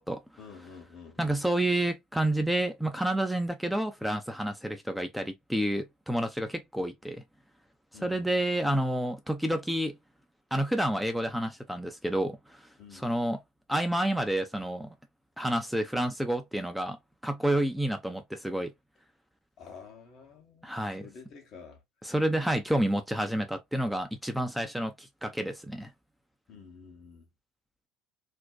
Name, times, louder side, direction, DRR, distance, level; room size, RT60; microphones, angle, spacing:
voice 1, 0.4-1.4 7.9-8.3 12.8-13.1 19.6-21.8 26.5-27.3, left 5 dB, 55° left, 1.0 m, -49 dB
voice 2, 1.2-7.2 7.9-10.0 10.5-12.6 12.9-13.4 13.7-14.9 15.4-17.0 17.2-18.7 20.6-21.1 22.0-25.9, right 1 dB, ahead, 0.5 m, -29 dB
2.6 x 2.1 x 2.3 m
hypercardioid pair, 70°, 0 cm